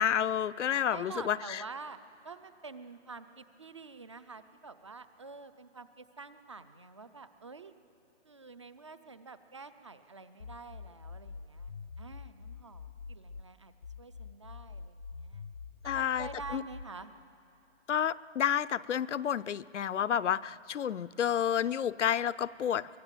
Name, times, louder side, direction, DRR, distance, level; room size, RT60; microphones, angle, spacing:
voice 1, 0.0-1.6 15.8-16.6 17.9-23.0, left 9 dB, 75° left, 17 dB, 0.6 m, -30 dB
voice 2, 0.9-2.0 2.2-7.7 8.2-13.7 14.0-15.4 15.8-17.1, right 4 dB, 25° right, 12 dB, 0.5 m, -47 dB
sound 1, 10.4-13.4 13.8-16.8, left 5 dB, 20° left, 0.6 m, -45 dB
24.5 x 21.5 x 9.0 m, 2.7 s
hypercardioid pair, 170°, 37 cm